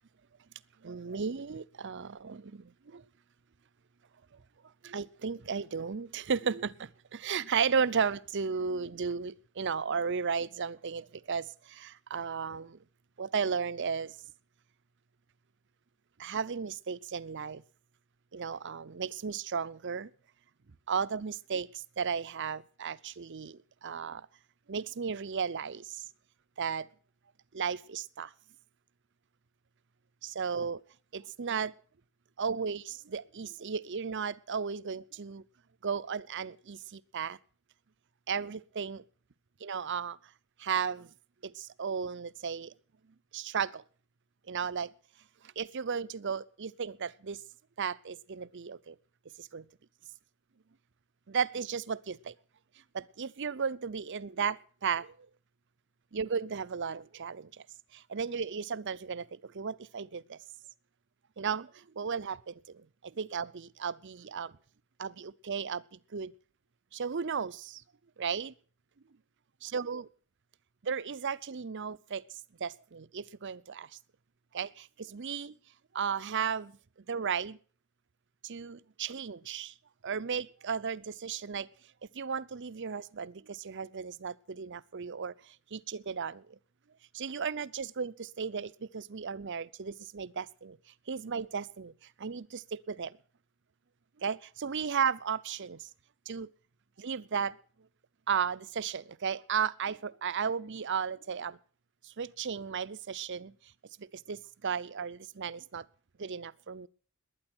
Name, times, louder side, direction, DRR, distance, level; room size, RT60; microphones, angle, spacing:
voice 1, 0.8-3.0 4.8-12.8 13.2-14.2 16.2-17.6 18.3-20.1 20.9-24.3 24.7-26.0 26.6-26.9 27.5-28.3 30.2-30.8 31.1-31.7 32.4-35.4 35.8-37.4 38.3-39.0 39.6-40.2 40.6-41.1 41.4-42.7 43.3-43.8 44.5-44.9 45.6-47.4 47.8-49.0 49.4-49.7 51.3-52.3 52.9-55.3 56.1-57.6 57.9-60.4 61.4-64.5 65.0-66.3 66.9-67.8 68.2-68.5 69.6-70.0 70.8-73.9 74.5-75.5 75.9-76.8 77.1-77.6 78.4-79.7 80.0-81.7 82.1-86.6 87.1-90.8 91.1-91.9 92.2-93.1 94.2-95.9 96.3-96.5 97.0-97.6 98.3-101.6 102.0-103.5 104.0-105.8 106.2-106.9, right 6 dB, 55° right, 0.6 m, -35 dB
20.5 x 9.8 x 6.1 m
head